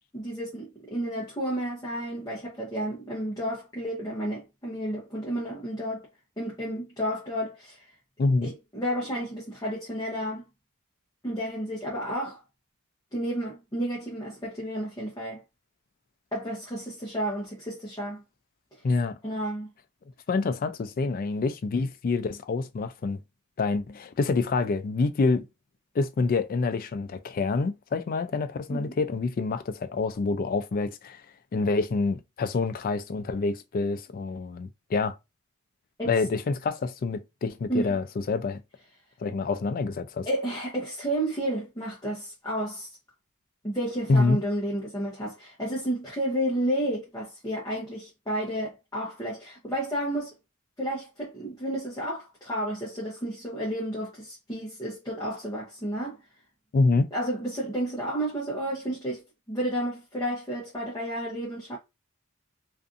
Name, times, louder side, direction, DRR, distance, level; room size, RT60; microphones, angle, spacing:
voice 1, 0.1-6.1 6.4-7.9 8.4-10.5 11.2-12.4 13.1-15.4 16.3-18.2 19.2-19.7 28.7-28.9 36.0-36.2 37.7-38.0 40.2-42.9 43.6-50.3 50.8-56.2 57.1-61.8, right 1 dB, 15° left, 0.7 m, -31 dB
voice 2, 8.2-8.5 18.8-19.1 20.3-23.2 23.6-25.4 26.0-31.2 31.5-35.2 36.1-38.6 39.2-40.3 44.1-44.4 56.7-57.1, left 3 dB, 40° left, 0.3 m, -27 dB
2.5 x 2.4 x 2.4 m
head